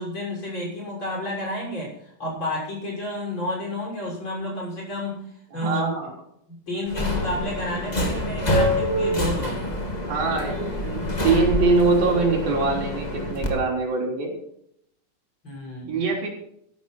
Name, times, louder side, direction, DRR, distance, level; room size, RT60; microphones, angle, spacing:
voice 1, 0.0-5.3 5.5-6.0 6.5-9.6 15.4-15.9, left 1 dB, 30° left, -2 dB, 7.1 m, -31 dB
voice 2, 5.5-6.1 10.1-14.4 15.9-16.3, right 4 dB, 80° right, -1 dB, 5.3 m, -23 dB
Subway metro underground, 6.9-13.5, left 1 dB, 15° left, 1.7 m, -26 dB
14.5 x 11.5 x 4.4 m, 0.72 s
omnidirectional pair, 4.1 m